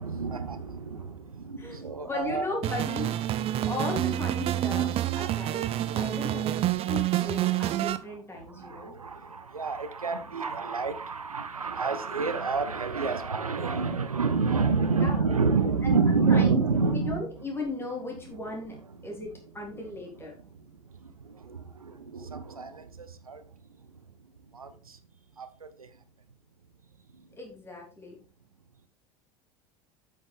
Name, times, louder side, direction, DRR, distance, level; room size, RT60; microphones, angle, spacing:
voice 1, 0.0-2.5 3.5-3.7 6.9-7.0 7.7-7.8 8.3-17.2 19.7-19.8 20.8-23.4 24.5-25.0 25.4-25.9, right 4 dB, 85° right, 0.6 m, -29 dB
voice 2, 2.0-3.1 3.7-8.9 15.0-15.3 15.8-18.8 19.0-20.3 27.4-28.2, left 3 dB, 15° left, 3.2 m, -36 dB
sound 1, 2.6-8.0, right 13 dB, 35° right, 0.5 m, -28 dB
8.1 x 6.2 x 3.6 m
figure-of-eight pair, 75°, 18 cm